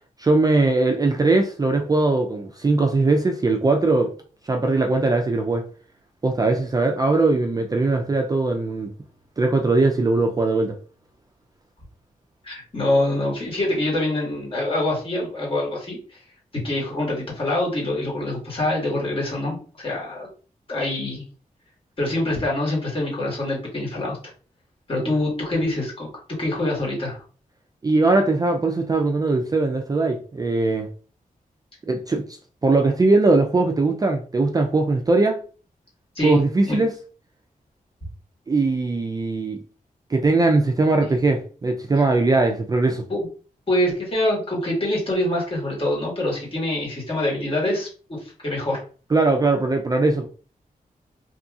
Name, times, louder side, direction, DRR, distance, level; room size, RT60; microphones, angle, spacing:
voice 1, 0.2-4.1 4.5-5.6 6.2-8.9 9.4-10.8 25.0-25.1 27.8-30.9 31.9-35.4 36.2-36.9 38.5-39.6 40.1-43.0 49.1-50.3, right 3 dB, 25° right, 3 dB, 0.3 m, -20 dB
voice 2, 12.4-16.0 16.6-20.3 20.7-21.2 22.0-24.2 24.9-26.1 26.4-27.2 36.1-36.4 36.7-36.8 43.1-43.3 43.7-48.8, left 1 dB, 40° left, -3 dB, 1.4 m, -25 dB
2.9 x 2.6 x 2.3 m, 0.39 s
wide cardioid pair, 135°, 15 cm